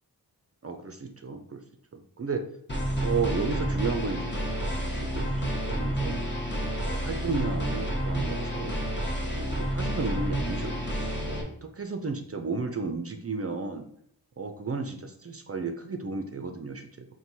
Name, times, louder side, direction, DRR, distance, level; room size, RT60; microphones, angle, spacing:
voice 1, 0.6-1.6 1.9-2.5 3.0-6.2 6.9-8.8 9.4-13.9 14.4-17.1, right 4 dB, 35° right, 6 dB, 0.5 m, -33 dB
sound 1, 2.7-11.4, equal, 30° left, 1.1 m, -30 dB
4.4 x 2.2 x 4.0 m, 0.70 s
cardioid pair, 45°, 39 cm